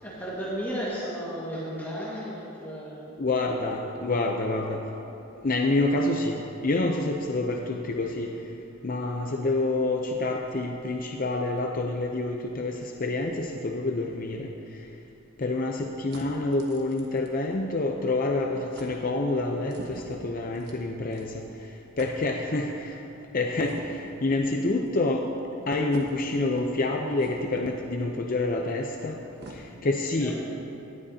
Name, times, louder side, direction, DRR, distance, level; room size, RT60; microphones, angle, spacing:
voice 1, 0.0-3.2 30.2-30.4, equal, 10° left, -7 dB, 1.7 m, -34 dB
voice 2, 3.2-4.8 5.4-8.3 8.8-14.5 15.4-21.4 22.0-22.9 23.3-25.2 25.7-29.2 29.8-30.4, left 2 dB, 45° left, 2 dB, 0.6 m, -27 dB
sound 1, 14.5-18.0 18.3-18.5 18.7-18.9 19.7-21.6 22.0-22.1 23.6-24.2 24.9-25.0 25.9-26.1 27.2-27.7 28.6-28.7 29.0-29.6, right 1 dB, 55° right, 1.4 m, -47 dB
18.5 x 12.0 x 2.8 m, 2.8 s
head